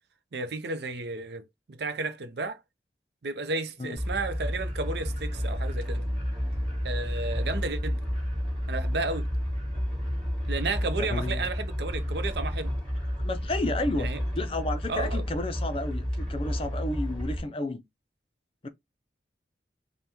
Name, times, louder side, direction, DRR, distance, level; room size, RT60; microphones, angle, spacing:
voice 1, 0.3-2.6 3.2-6.1 6.8-8.0 8.7-9.3 10.5-12.7 14.0-14.2 14.9-15.2, right 3 dB, 65° right, 0.6 m, -33 dB
sound 1, 4.0-17.4, equal, 5° left, 3.0 m, -31 dB
voice 2, 11.0-11.5 13.2-17.8 18.6-18.7, left 2 dB, 30° left, 0.5 m, -32 dB
5.6 x 2.2 x 3.0 m
head